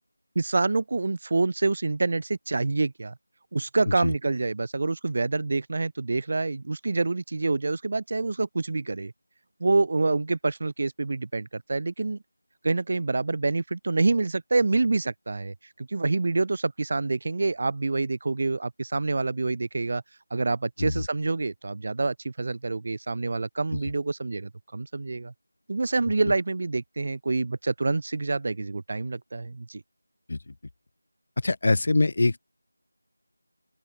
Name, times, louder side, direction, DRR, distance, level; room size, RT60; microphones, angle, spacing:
voice 1, 0.4-3.1 3.5-9.1 9.6-12.2 12.6-20.0 20.3-25.3 25.7-29.8, right 3 dB, 30° right, 0.3 m, -27 dB
voice 2, 31.4-32.4, left 2 dB, 35° left, 0.5 m, -24 dB
open air
figure-of-eight pair, 180°, 0 cm